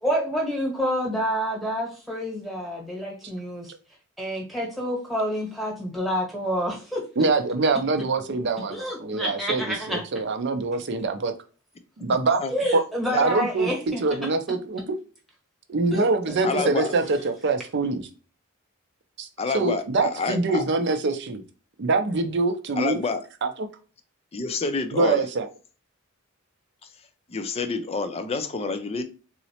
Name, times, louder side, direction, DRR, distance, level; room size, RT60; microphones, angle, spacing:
voice 1, 0.0-3.7 4.2-7.0 8.7-10.0 12.5-14.0 15.9-17.0, equal, ahead, -3 dB, 1.0 m, -28 dB
voice 2, 7.2-11.3 12.0-12.4 12.7-12.8 13.2-13.7 14.0-14.8 15.7-18.1 19.2-19.3 19.5-21.4 21.8-23.0 23.4-23.5 24.9-25.5, right 3 dB, 55° right, 7 dB, 0.5 m, -24 dB
voice 3, 12.1-12.5 13.1-13.3 16.4-16.9 19.4-20.7 22.8-23.2 24.3-25.2 27.3-29.0, left 4 dB, 30° left, 9 dB, 0.4 m, -28 dB
3.8 x 2.1 x 2.8 m, 0.36 s
head